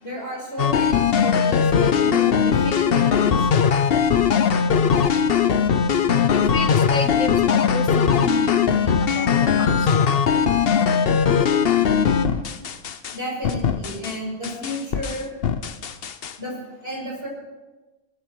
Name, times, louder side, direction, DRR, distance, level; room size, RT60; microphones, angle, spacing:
voice 1, 0.0-3.7 8.5-8.6 13.1-15.6 16.4-17.3, left 1 dB, 50° right, -2 dB, 5.8 m, -33 dB
sound 1, 0.6-13.2 13.4-14.1 14.4-16.3, left 7 dB, 55° left, 0.9 m, -20 dB
voice 2, 6.5-9.9, left 3 dB, 80° left, 7 dB, 1.8 m, -30 dB
20.0 x 13.5 x 4.6 m, 1.2 s
omnidirectional pair, 1.3 m